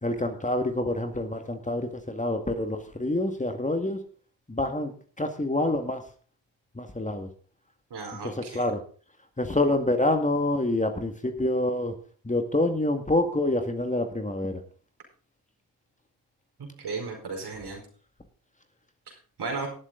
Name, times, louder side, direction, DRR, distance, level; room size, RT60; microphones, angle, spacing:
voice 1, 0.0-4.0 4.5-6.0 6.8-7.3 8.2-8.8 9.4-11.9 12.2-14.6, left 1 dB, 15° left, 5 dB, 2.0 m, -27 dB
voice 2, 7.9-8.6 16.6-17.8 19.4-19.7, right 4 dB, 60° right, 2 dB, 4.8 m, -35 dB
19.0 x 7.4 x 3.9 m, 0.42 s
supercardioid pair, 55°, 44 cm